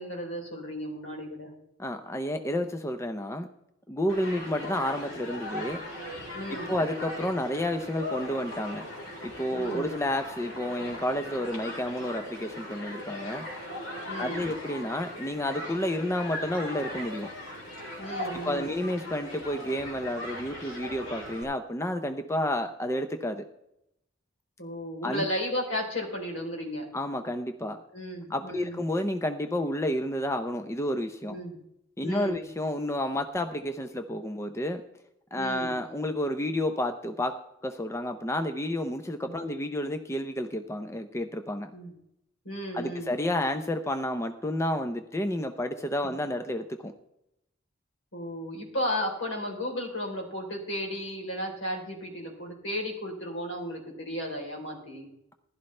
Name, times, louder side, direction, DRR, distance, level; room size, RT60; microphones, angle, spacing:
voice 1, 0.0-1.5 6.3-6.8 9.5-9.9 14.1-14.5 18.0-18.8 24.6-26.9 27.9-28.8 31.3-31.6 32.0-32.5 35.4-35.8 39.2-39.4 41.7-41.9 42.4-43.1 46.0-46.1 48.1-55.1, equal, 70° left, 1 dB, 3.6 m, -34 dB
voice 2, 1.8-3.5 3.9-5.8 6.5-8.9 9.2-13.5 14.2-17.3 18.4-23.4 25.0-25.2 26.9-27.8 28.3-31.4 32.0-34.8 35.3-37.3 37.6-41.7 42.7-46.9, left 1 dB, 15° left, 7 dB, 0.5 m, -30 dB
Human group actions, 4.1-21.4, left 1 dB, 85° left, 4.0 m, -39 dB
15.5 x 11.5 x 3.3 m, 0.82 s
head